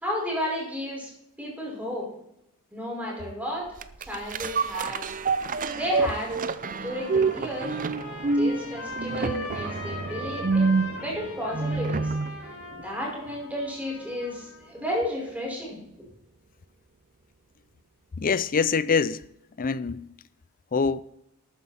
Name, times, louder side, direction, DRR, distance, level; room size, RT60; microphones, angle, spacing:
voice 1, 0.0-1.1 1.4-2.1 2.7-3.7 4.0-5.1 5.7-6.3 6.8-7.8 8.3-12.1 12.8-16.1, left 1 dB, 5° right, 5.2 m, -32 dB
sound 1, 3.8-12.4 12.8-12.9, right 4 dB, 40° right, 0.6 m, -27 dB
Trumpet, 6.4-14.7, left 2 dB, 75° left, 4.9 m, -41 dB
voice 2, 18.2-19.2 19.6-20.1 20.7-21.0, left 5 dB, 40° left, 0.5 m, -24 dB
13.0 x 9.4 x 4.4 m
head